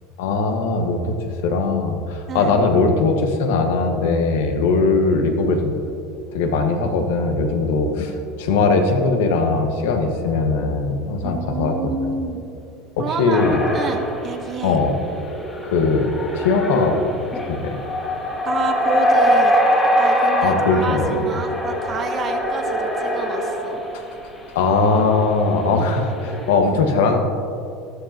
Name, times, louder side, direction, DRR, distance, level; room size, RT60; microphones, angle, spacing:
voice 1, 0.2-1.1 1.4-5.8 6.3-8.1 8.4-11.9 13.0-13.6 14.6-15.0 15.6-17.0 17.5-17.8 20.4-21.3 24.5-27.2, left 3 dB, 85° left, 4 dB, 1.4 m, -20 dB
voice 2, 11.2-12.4 13.0-14.8 18.4-19.5 20.0-23.8, right 5 dB, 30° right, 6 dB, 1.0 m, -29 dB
sound 1, 13.3-24.3 25.0-25.2 25.7-26.6, equal, 15° left, 2.0 m, -23 dB
13.0 x 13.0 x 2.9 m, 2.5 s
supercardioid pair, 145°, 0 cm